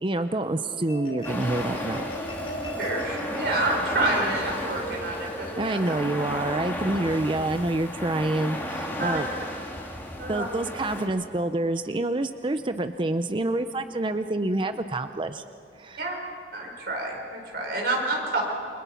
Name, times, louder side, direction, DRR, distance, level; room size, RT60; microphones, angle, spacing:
voice 1, 0.0-2.0 5.6-9.3 10.3-15.4 15.8-16.0, right 2 dB, 30° right, 9 dB, 0.5 m, -27 dB
Marimba xylophone, 0.6-7.2, equal, 30° left, 3.7 m, -38 dB
sound 1, 1.2-11.1, left 1 dB, 15° left, 2.7 m, -34 dB
voice 2, 2.8-5.9 9.0-9.2 10.2-10.5 16.0-16.2 16.5-18.4, right 2 dB, 60° right, 0 dB, 4.6 m, -28 dB
29.0 x 22.5 x 5.8 m, 2.4 s
head